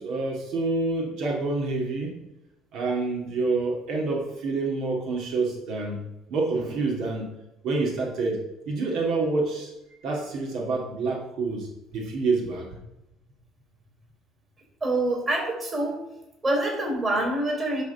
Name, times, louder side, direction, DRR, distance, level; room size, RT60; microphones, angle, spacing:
voice 1, 0.0-2.1 2.7-6.0 6.3-7.3 7.6-9.7 10.0-11.7 11.9-12.7, right 3 dB, 60° right, 0 dB, 2.1 m, -27 dB
voice 2, 14.8-16.0 16.4-17.8, right 1 dB, 25° right, 0 dB, 3.3 m, -25 dB
10.5 x 3.7 x 6.8 m, 0.93 s
cardioid pair, 135°, 0 cm